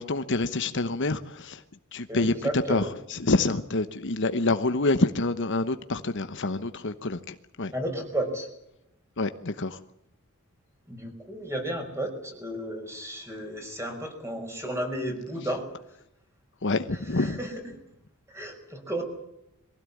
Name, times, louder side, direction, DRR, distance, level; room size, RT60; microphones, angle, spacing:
voice 1, 0.0-1.6 1.9-7.7 9.2-9.8 16.6-17.4, left 2 dB, 55° left, 10 dB, 1.1 m, -27 dB
voice 2, 2.1-2.9 7.7-8.5 10.9-15.6 16.9-17.5 18.3-19.0, right 1 dB, 10° right, 4 dB, 5.6 m, -33 dB
23.0 x 16.5 x 8.6 m, 0.82 s
head